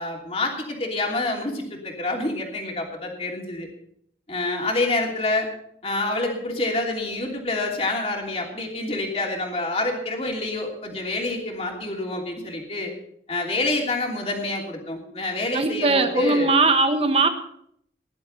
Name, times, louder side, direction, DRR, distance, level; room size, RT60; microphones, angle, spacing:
voice 1, 0.0-3.7 4.3-5.5 5.8-12.9 13.3-16.5, left 2 dB, 35° left, 0 dB, 3.0 m, -27 dB
voice 2, 15.5-17.3, right 3 dB, 35° right, 7 dB, 1.3 m, -20 dB
18.0 x 11.5 x 4.2 m, 0.69 s
head